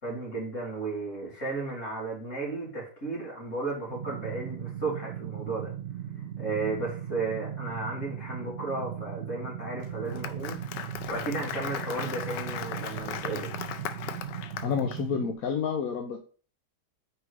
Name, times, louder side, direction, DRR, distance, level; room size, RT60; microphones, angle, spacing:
voice 1, 0.0-5.7 6.4-10.6 11.1-13.5, right 3 dB, 45° left, -5 dB, 3.3 m, -34 dB
sound 1, 3.9-15.3, right 10 dB, 80° right, 0.6 m, -38 dB
Applause, 9.8-15.0, left 9 dB, 90° left, 1.2 m, -38 dB
voice 2, 14.6-16.2, left 6 dB, 65° left, 3 dB, 1.1 m, -29 dB
4.9 x 4.8 x 4.8 m, 0.40 s
omnidirectional pair, 1.8 m